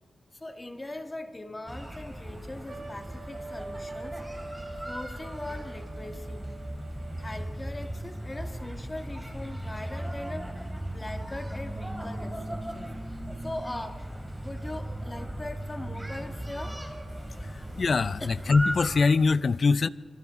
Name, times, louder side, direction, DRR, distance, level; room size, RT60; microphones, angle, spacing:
voice 1, 0.3-4.2 4.9-6.4 7.2-14.0 14.4-16.8, left 1 dB, 20° left, 1.5 m, -40 dB
sound 1, 1.7-19.0, right 1 dB, 10° right, 3.2 m, -37 dB
Trumpet, 2.7-7.7, right 2 dB, 45° right, 1.5 m, -44 dB
voice 2, 17.4-19.9, left 4 dB, 50° left, 0.4 m, -23 dB
28.0 x 27.0 x 3.6 m
wide cardioid pair, 120°, 0 cm